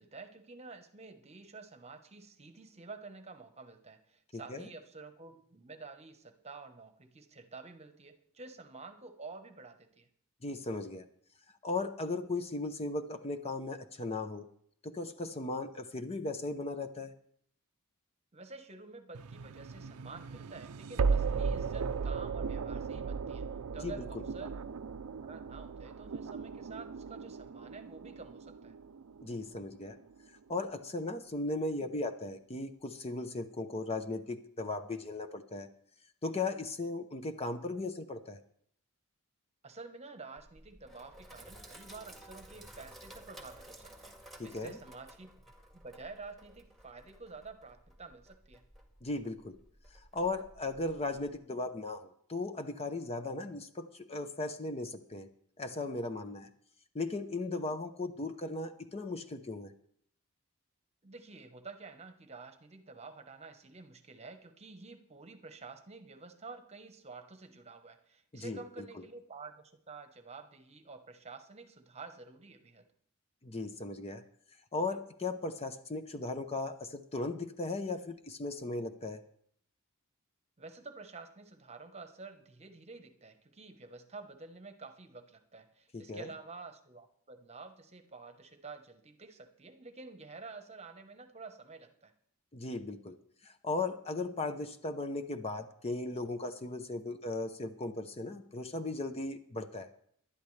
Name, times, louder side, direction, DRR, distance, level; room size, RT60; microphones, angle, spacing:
voice 1, 0.0-10.1 18.3-23.5 23.7-28.8 39.6-45.3 45.7-48.6 61.0-72.9 80.6-92.1, right 3 dB, 30° right, 8 dB, 1.1 m, -50 dB
voice 2, 4.3-4.7 10.4-11.1 11.6-14.5 14.8-17.1 23.8-24.2 29.2-30.0 30.5-35.7 36.2-38.4 44.4-44.8 49.0-49.6 50.1-55.3 55.6-56.5 56.9-59.7 68.3-68.9 73.4-74.2 74.7-79.2 85.9-86.3 92.5-93.2 93.4-99.9, left 2 dB, 30° left, 8 dB, 0.7 m, -37 dB
sound 1, 19.1-30.2, right 5 dB, 80° right, 0.5 m, -36 dB
Sink (filling or washing), 40.4-51.4, right 1 dB, ahead, 1.8 m, -55 dB
19.0 x 11.5 x 3.3 m, 0.65 s
head